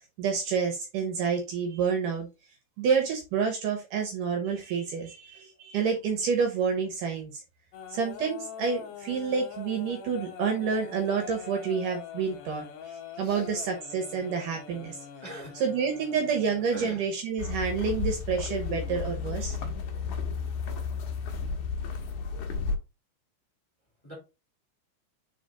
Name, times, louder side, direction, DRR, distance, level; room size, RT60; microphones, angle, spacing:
voice 1, 0.0-2.3 2.8-7.4 7.9-12.7 13.2-15.0 15.6-19.6, right 6 dB, 70° right, 4 dB, 2.5 m, -28 dB
sound 1, 7.7-16.6 18.0-18.1 19.2-19.4 20.6-21.4 21.9-22.1, left 6 dB, 90° left, 1.5 m, -44 dB
voice 2, 13.2-13.5 14.9-15.6 16.7-17.1 24.0-24.1, right 1 dB, 10° left, -3 dB, 2.6 m, -43 dB
sound 2, 17.4-22.8, left 5 dB, 65° left, 2.2 m, -32 dB
5.0 x 4.8 x 3.8 m, 0.27 s
omnidirectional pair, 4.3 m